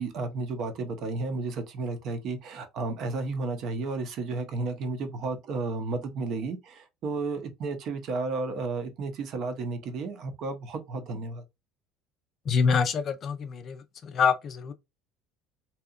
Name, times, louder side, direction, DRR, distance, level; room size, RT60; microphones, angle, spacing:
voice 1, 0.0-11.4, right 3 dB, 50° right, 0.6 m, -32 dB
voice 2, 12.5-13.7 14.1-14.7, left 6 dB, 40° left, 0.4 m, -25 dB
2.7 x 2.3 x 2.4 m
cardioid pair, 135°, 0 cm